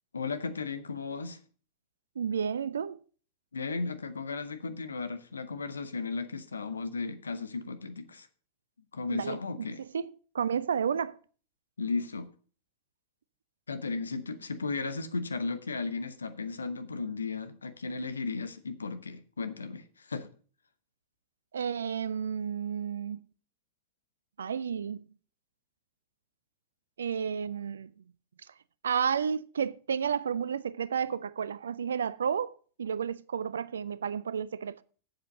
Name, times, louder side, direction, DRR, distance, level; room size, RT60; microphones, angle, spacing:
voice 1, 0.1-1.4 3.5-8.3 8.9-9.8 11.8-12.3 13.7-20.3, left 4 dB, 75° left, 1.0 m, -35 dB
voice 2, 2.2-3.0 9.1-9.4 9.9-10.1 10.3-11.1 21.5-23.2 24.4-25.0 27.0-27.9 28.8-34.8, right 7 dB, 70° right, 0.4 m, -31 dB
7.8 x 7.4 x 6.5 m
figure-of-eight pair, 90°, 0 cm